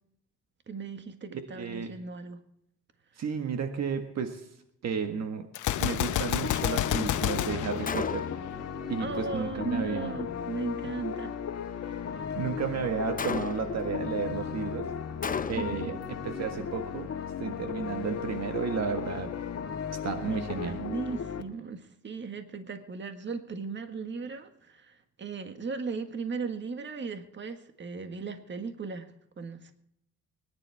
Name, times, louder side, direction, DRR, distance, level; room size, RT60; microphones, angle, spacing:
voice 1, 0.7-2.4 9.0-11.4 11.7-12.4 15.5-16.0 20.3-29.7, right 4 dB, 40° right, 7 dB, 1.7 m, -37 dB
voice 2, 1.3-1.9 3.2-4.4 4.8-5.5 5.8-8.3 8.9-10.2 12.3-14.9 15.5-16.0 16.2-17.1 17.4-19.3 20.0-20.8, right 6 dB, 60° right, 7 dB, 1.7 m, -32 dB
Gunshot gunfire, 5.5-8.7, left 12 dB, 80° left, 0.9 m, -30 dB
sound 1, 6.4-21.4, left 7 dB, 55° left, 1.8 m, -36 dB
Gunshot gunfire 2, 7.9-8.5 13.2-13.9 15.2-15.9, left 6 dB, 30° left, 0.8 m, -34 dB
25.0 x 10.5 x 3.5 m, 0.74 s
cardioid pair, 90°, 30 cm